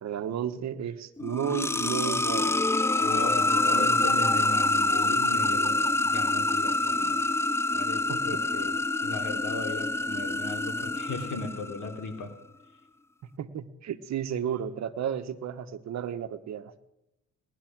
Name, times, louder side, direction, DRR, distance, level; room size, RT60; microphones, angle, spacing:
voice 1, 0.0-2.6 3.8-4.0 8.1-8.2 13.4-16.8, right 9 dB, 65° right, 8 dB, 1.3 m, -33 dB
sound 1, 1.2-11.9, left 2 dB, 10° left, 0.4 m, -26 dB
voice 2, 3.0-7.2 7.7-12.3, left 3 dB, 75° left, 5 dB, 3.1 m, -37 dB
19.5 x 11.0 x 6.1 m, 0.91 s
cardioid pair, 90°, 30 cm